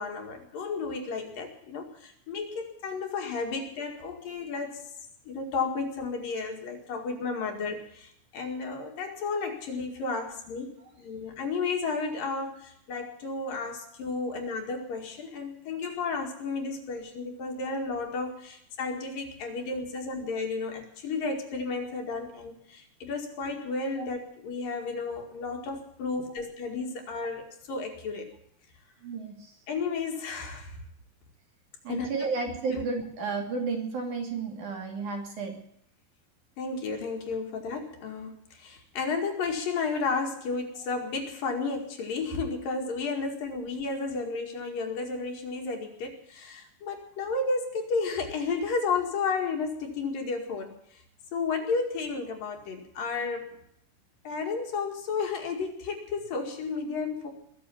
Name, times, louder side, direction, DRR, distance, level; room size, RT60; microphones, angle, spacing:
voice 1, 0.0-4.8 5.3-28.3 29.7-30.8 31.9-32.3 32.7-32.8 36.6-51.0 51.3-53.5 54.3-57.3, left 4 dB, 70° left, 3 dB, 3.7 m, -32 dB
voice 2, 29.0-29.5 31.8-35.6 40.7-40.8, right 4 dB, 55° right, 2 dB, 4.0 m, -32 dB
21.0 x 7.1 x 8.5 m, 0.72 s
omnidirectional pair, 4.3 m